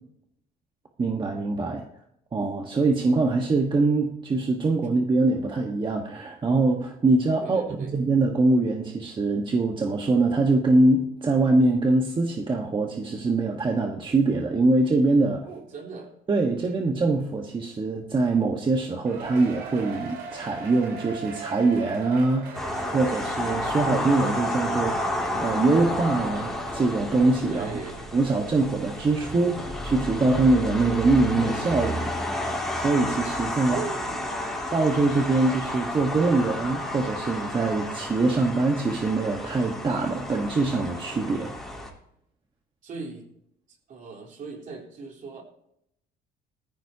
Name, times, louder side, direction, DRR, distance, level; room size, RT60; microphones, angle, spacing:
voice 1, 1.0-1.8 2.3-7.6 7.9-15.5 16.3-25.0 25.3-27.8 28.1-32.1 32.8-33.8 34.7-41.5, right 3 dB, 30° right, 2 dB, 1.3 m, -23 dB
voice 2, 7.4-7.9 15.4-16.1 27.5-28.0 33.7-34.4 42.8-43.3 43.7-45.4, right 5 dB, 55° right, 0 dB, 3.7 m, -38 dB
Cheering, 19.1-26.8 27.2-27.3 28.0-28.1, right 5 dB, 75° right, 4.3 m, -40 dB
sound 1, 22.5-41.9, left 1 dB, ahead, 3.6 m, -31 dB
18.5 x 14.5 x 2.8 m, 0.77 s
cardioid pair, 110°, 17 cm